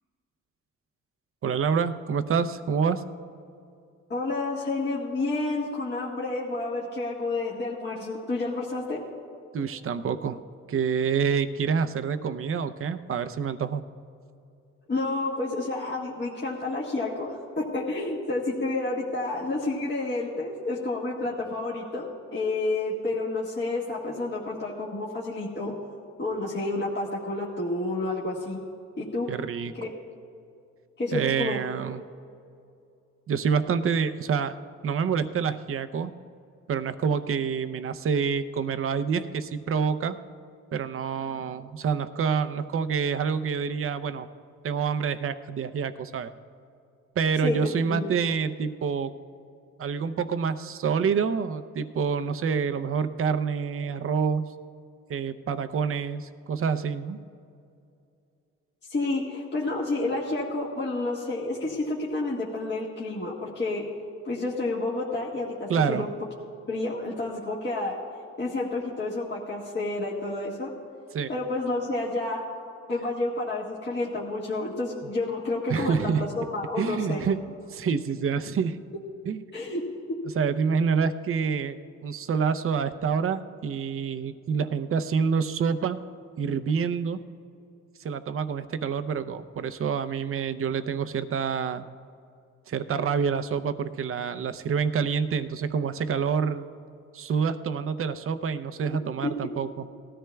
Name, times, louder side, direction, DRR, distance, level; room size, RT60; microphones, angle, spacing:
voice 1, 1.4-3.0 9.5-10.4 10.7-13.8 29.3-29.7 31.1-32.0 33.3-34.5 34.8-36.1 36.7-40.2 40.7-44.3 44.6-46.3 47.2-49.1 49.8-54.5 55.1-57.2 65.7-66.0 71.1-71.3 75.0-75.1 75.7-76.2 76.8-77.4 77.7-78.8 79.3-79.4 80.4-86.0 86.4-87.2 88.0-91.8 92.7-96.7 97.1-99.7, right 6 dB, 45° right, 10 dB, 0.6 m, -27 dB
voice 2, 4.1-9.0 14.9-22.0 22.3-25.7 26.2-28.6 29.0-29.3 29.7-29.9 31.0-31.6 47.4-48.1 58.8-63.8 64.2-66.1 66.7-68.0 68.4-70.7 71.3-72.5 72.9-77.2 79.5-79.8 80.1-80.2 99.2-99.5, left 2 dB, 35° left, -5 dB, 1.6 m, -30 dB
19.0 x 13.5 x 2.3 m, 2.5 s
cardioid pair, 90°, 30 cm